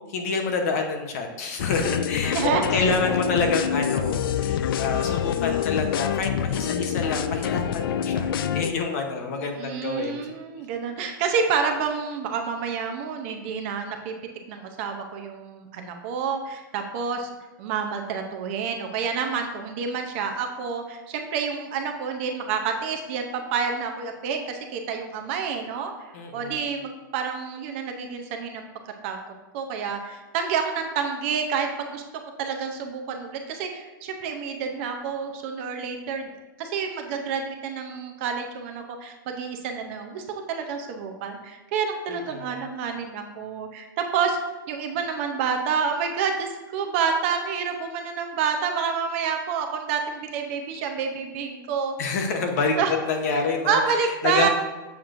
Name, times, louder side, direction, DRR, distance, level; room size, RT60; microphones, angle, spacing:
voice 1, 0.0-10.4 26.1-26.6 42.1-42.5 52.0-52.8 53.1-54.5, left 4 dB, 45° left, 4 dB, 0.8 m, -28 dB
sound 1, 1.6-8.7, left 8 dB, 85° left, 0.4 m, -26 dB
voice 2, 2.3-2.8 9.6-14.1 14.5-25.9 26.3-28.6 29.0-29.2 29.5-32.0 32.4-36.3 36.6-44.4 44.7-52.0 52.8-52.9 53.3-53.4 53.7-54.5, right 6 dB, 35° right, 4 dB, 0.6 m, -28 dB
7.1 x 5.9 x 2.5 m, 1.1 s
supercardioid pair, 175°, 12 cm